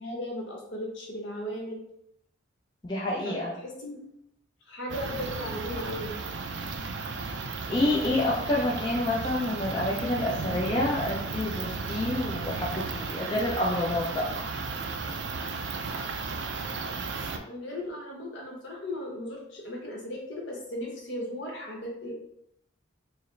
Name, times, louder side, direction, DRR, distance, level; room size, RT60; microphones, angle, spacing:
voice 1, 0.0-1.8 3.2-4.0 4.7-6.1 17.3-22.1, left 1 dB, 60° left, -1 dB, 1.0 m, -36 dB
voice 2, 2.8-3.6 7.7-14.3, left 1 dB, 20° left, -4 dB, 0.4 m, -28 dB
sound 1, 4.9-17.4, right 4 dB, 60° right, 0.4 m, -34 dB
4.7 x 2.0 x 3.2 m, 0.76 s
head